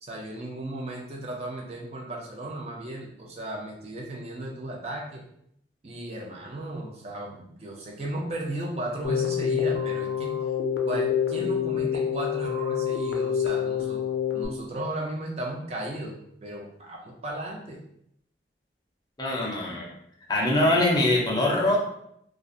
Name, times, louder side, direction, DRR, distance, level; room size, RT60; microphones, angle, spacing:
voice 1, 0.0-5.3 5.8-10.3 10.8-14.0 14.3-17.8, right 1 dB, 35° right, -1 dB, 0.4 m, -35 dB
Keyboard (musical), 9.0-14.5, left 8 dB, 90° left, 0.4 m, -27 dB
voice 2, 19.2-19.9 20.3-21.8, left 1 dB, 20° left, -3 dB, 0.5 m, -23 dB
2.4 x 2.0 x 2.5 m, 0.72 s
head